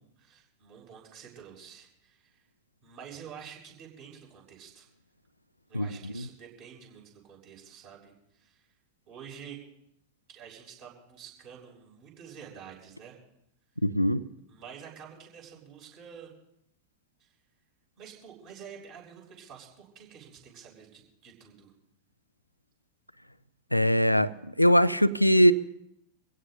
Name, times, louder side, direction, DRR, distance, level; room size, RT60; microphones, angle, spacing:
voice 1, 0.0-2.4 2.8-4.9 5.7-8.7 9.1-9.6 10.3-13.2 14.5-16.3 17.2-17.3 18.0-21.7, right 7 dB, 40° right, 7.0 m, -48 dB
voice 2, 13.8-14.2 23.7-24.3 24.6-25.5, equal, 90° left, 0.5 m, -21 dB
26.5 x 16.5 x 2.7 m
figure-of-eight pair, 90°, 0 cm